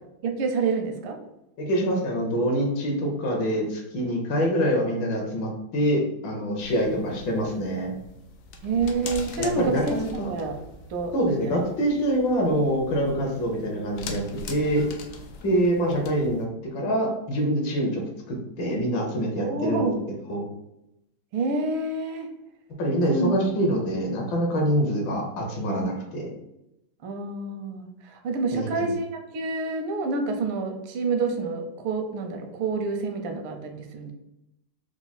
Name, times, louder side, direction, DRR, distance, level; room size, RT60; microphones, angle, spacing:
voice 1, 0.2-1.2 8.6-10.0 10.3-10.6 10.9-11.1 11.4-11.6 15.4-15.7 19.4-20.0 21.3-22.3 23.1-23.3 27.0-29.1 29.3-34.1, right 3 dB, 80° right, 5 dB, 1.5 m, -28 dB
voice 2, 1.6-7.9 9.4-10.3 11.1-14.2 14.5-14.8 15.4-18.0 18.3-19.9 20.3-20.4 22.8-26.3 28.5-28.9, equal, 70° left, 1 dB, 1.5 m, -25 dB
sound 1, 6.6-16.4, left 3 dB, 85° left, 0.8 m, -42 dB
4.6 x 2.0 x 4.0 m, 0.87 s
omnidirectional pair, 2.3 m